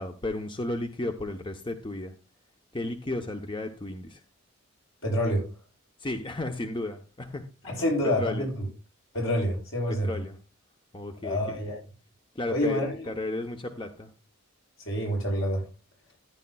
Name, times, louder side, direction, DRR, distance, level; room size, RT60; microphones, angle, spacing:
voice 1, 0.0-2.1 2.7-4.2 6.0-7.8 8.2-8.5 10.0-10.3 10.9-11.6 12.4-14.1, left 2 dB, 25° left, 5 dB, 0.7 m, -34 dB
voice 2, 5.0-5.5 7.6-8.7 9.1-10.1 11.2-11.8 12.5-13.1 14.9-15.6, equal, 70° left, -1 dB, 7.1 m, -27 dB
15.0 x 9.7 x 2.3 m, 0.31 s
head